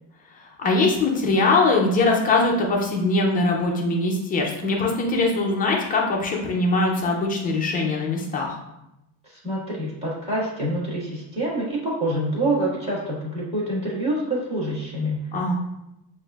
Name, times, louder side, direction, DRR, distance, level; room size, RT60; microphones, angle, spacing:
voice 1, 0.3-8.6 15.3-15.6, left 3 dB, 20° left, -1 dB, 0.3 m, -22 dB
voice 2, 9.3-15.2, right 1 dB, 15° right, -6 dB, 1.5 m, -26 dB
7.6 x 2.6 x 2.3 m, 0.88 s
cardioid pair, 170°, 47 cm